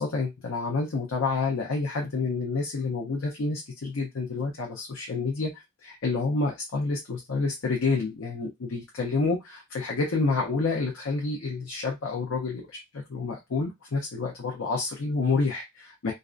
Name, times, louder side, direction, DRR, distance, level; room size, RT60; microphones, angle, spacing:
voice 1, 0.0-16.1, left 3 dB, 75° left, 0 dB, 0.6 m, -29 dB
2.5 x 2.1 x 2.4 m, 0.19 s
head